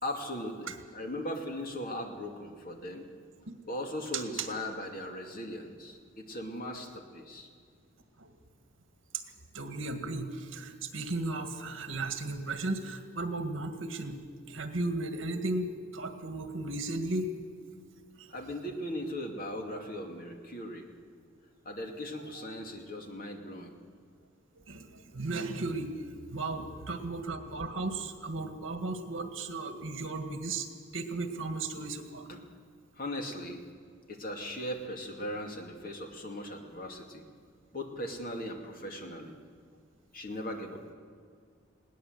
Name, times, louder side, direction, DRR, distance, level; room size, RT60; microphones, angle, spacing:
voice 1, 0.0-3.1 3.7-7.5 18.3-20.9 21.7-23.7 32.3-32.4 33.0-33.6 34.1-37.2 37.7-39.3 40.1-40.8, left 1 dB, 45° left, 3 dB, 2.4 m, -38 dB
voice 2, 4.1-4.5 8.2-8.3 9.1-9.2 9.5-17.3 18.2-18.3 24.7-25.9 26.3-32.3, right 2 dB, 65° right, 7 dB, 1.8 m, -35 dB
21.0 x 18.0 x 8.0 m, 2.1 s
head